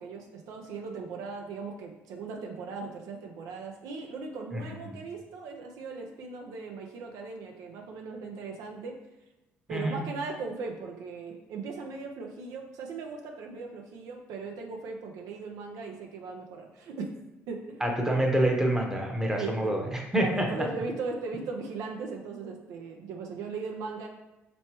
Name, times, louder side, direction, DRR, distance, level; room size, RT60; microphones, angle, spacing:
voice 1, 0.0-8.9 9.7-17.1 17.5-17.8 18.1-18.2 19.3-19.9 20.2-24.1, right 4 dB, 75° right, 1 dB, 0.5 m, -38 dB
voice 2, 9.7-10.0 17.8-20.5, right 1 dB, 10° right, 0 dB, 0.8 m, -27 dB
3.2 x 3.0 x 2.9 m, 1.0 s
supercardioid pair, 60°, 6 cm